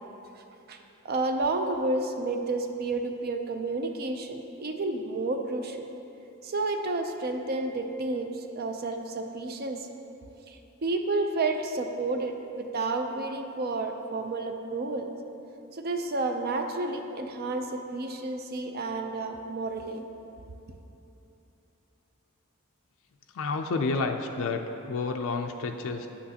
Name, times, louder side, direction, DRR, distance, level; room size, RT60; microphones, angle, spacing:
voice 1, 1.0-5.9 6.4-9.9 10.5-15.1 15.7-20.1, right 2 dB, 45° right, 5 dB, 0.4 m, -31 dB
voice 2, 23.3-26.1, left 3 dB, 65° left, 4 dB, 0.4 m, -30 dB
10.0 x 8.5 x 2.8 m, 3.0 s
head